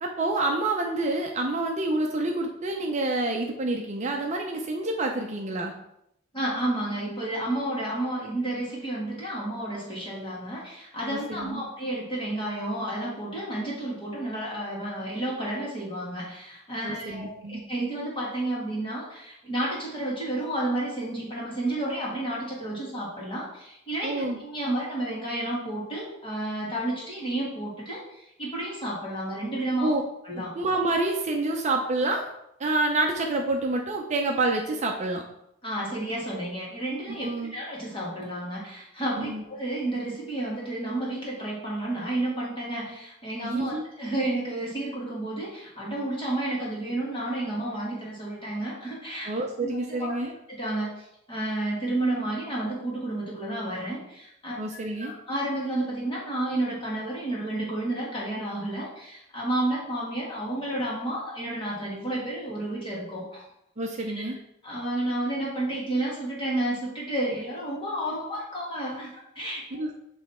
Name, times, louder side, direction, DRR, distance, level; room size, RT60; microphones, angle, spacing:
voice 1, 0.0-5.7 11.1-11.6 16.8-17.6 24.0-24.4 29.8-30.0 30.4-32.2 32.6-35.2 37.1-37.5 39.2-39.4 43.4-43.8 49.3-50.3 54.6-55.1 63.8-64.4 69.7-69.9, right 2 dB, 35° right, 2 dB, 0.6 m, -28 dB
voice 2, 6.3-29.9 30.2-30.5 35.6-49.3 49.6-50.2 50.5-54.5 55.0-63.4 64.1-64.3 64.6-69.9, right 1 dB, 25° left, -5 dB, 2.0 m, -31 dB
7.2 x 3.2 x 4.2 m, 0.79 s
head